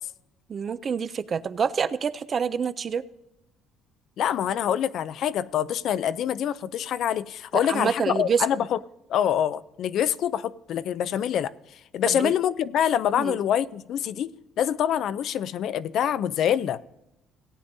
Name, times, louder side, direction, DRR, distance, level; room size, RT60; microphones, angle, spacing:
voice 1, 0.5-3.0 7.7-8.4 12.1-12.3 13.1-13.4, right 6 dB, 25° right, 14 dB, 0.4 m, -27 dB
voice 2, 4.2-8.8 9.1-11.5 11.9-14.3 14.6-16.8, left 10 dB, 45° left, 16 dB, 0.4 m, -25 dB
18.0 x 9.4 x 2.6 m, 0.88 s
cardioid pair, 170°, 0 cm